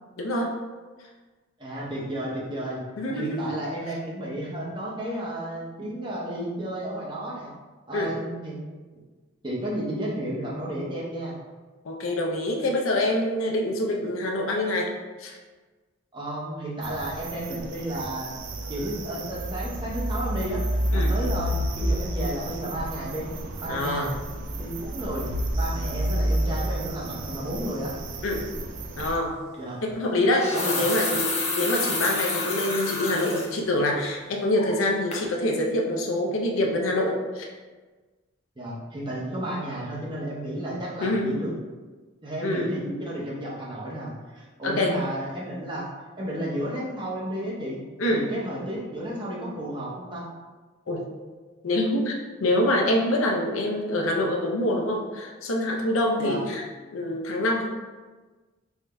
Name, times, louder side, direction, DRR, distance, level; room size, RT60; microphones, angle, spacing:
voice 1, 0.2-0.5 3.0-3.6 7.9-8.1 11.8-14.9 15.2-15.4 20.9-21.1 23.7-24.1 28.2-28.5 29.0-29.3 29.8-37.5 41.0-41.3 42.4-42.8 44.6-45.0 48.0-48.2 50.9-51.0 51.6-52.1 52.4-56.6 56.9-57.7, left 1 dB, 80° left, 1 dB, 0.6 m, -25 dB
voice 2, 1.6-2.8 3.1-7.5 7.9-8.6 9.4-11.4 16.1-18.3 18.7-20.6 20.9-23.3 23.6-24.1 24.5-25.3 25.6-27.9 29.6-29.8 30.5-30.8 38.6-41.5 42.2-45.9 46.2-47.8 48.1-50.2 56.2-56.4, right 1 dB, 25° right, -5 dB, 0.7 m, -32 dB
sound 1, 16.8-29.1, right 1 dB, 60° right, 0.4 m, -30 dB
sound 2, 29.0-29.2 30.2-33.5 33.9-34.0 34.6-34.9 35.1-35.3, left 3 dB, 30° left, 0.5 m, -29 dB
3.5 x 2.6 x 3.3 m, 1.3 s
head